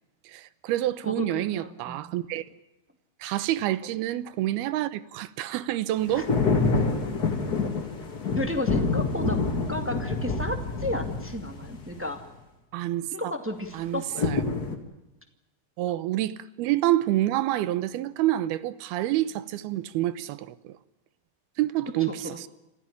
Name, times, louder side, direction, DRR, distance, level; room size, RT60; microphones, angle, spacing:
voice 1, 0.3-2.5 3.2-6.3 12.7-13.1 13.7-14.4 15.8-20.8 21.6-22.5, right 14 dB, 85° right, 2.9 m, -28 dB
voice 2, 1.0-2.1 6.1-6.2 8.3-12.2 13.1-14.3 22.1-22.4, left 1 dB, 10° right, 0.9 m, -33 dB
sound 1, 6.0-12.0 14.2-14.8, left 3 dB, 30° left, 2.5 m, -27 dB
27.0 x 15.0 x 9.9 m
omnidirectional pair, 4.3 m